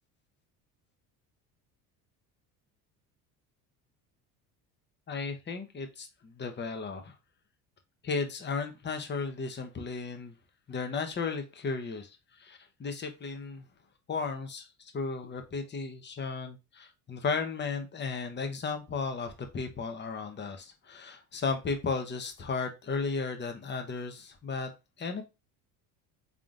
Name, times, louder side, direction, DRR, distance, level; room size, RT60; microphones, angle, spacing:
voice 1, 5.1-7.1 8.0-10.3 10.7-12.1 12.4-13.7 14.1-24.7 25.0-25.2, left 4 dB, 25° left, 6 dB, 0.9 m, -35 dB
3.7 x 3.6 x 2.4 m, 0.25 s
supercardioid pair, 80°, 42 cm